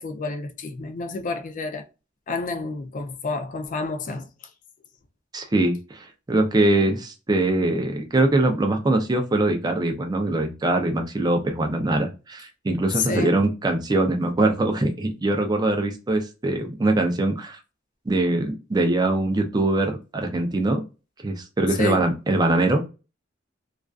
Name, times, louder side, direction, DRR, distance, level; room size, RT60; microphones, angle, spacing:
voice 1, 0.0-1.8 2.3-4.3 13.0-13.4 21.8-22.1, left 4 dB, 40° left, 0.4 m, -29 dB
voice 2, 5.3-17.6 18.1-20.8 21.2-22.8, right 2 dB, 20° right, 0.4 m, -22 dB
2.4 x 2.3 x 2.3 m
head